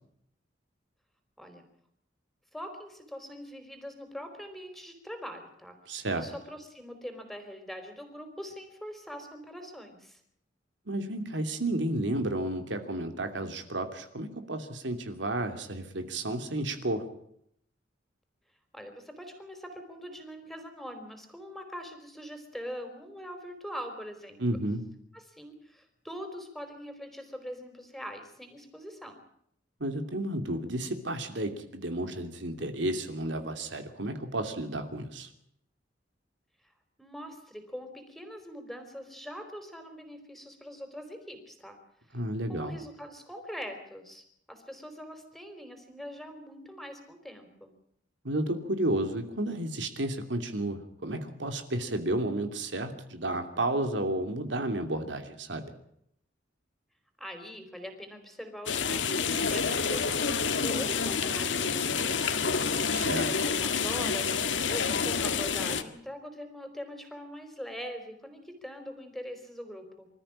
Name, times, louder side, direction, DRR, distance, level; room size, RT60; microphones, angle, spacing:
voice 1, 2.5-5.8 6.2-10.2 18.7-24.4 25.1-29.2 37.0-41.8 42.1-42.2 42.5-47.7 57.2-62.4 63.4-70.1, equal, ahead, 7 dB, 4.4 m, -43 dB
voice 2, 5.9-6.3 10.9-17.0 24.4-24.8 29.8-35.3 42.1-42.7 48.2-55.6 62.9-63.3, right 1 dB, 75° right, 6 dB, 2.8 m, -32 dB
sound 1, 58.7-65.8, left 5 dB, 80° left, 1.7 m, -28 dB
27.0 x 14.0 x 8.8 m, 0.72 s
head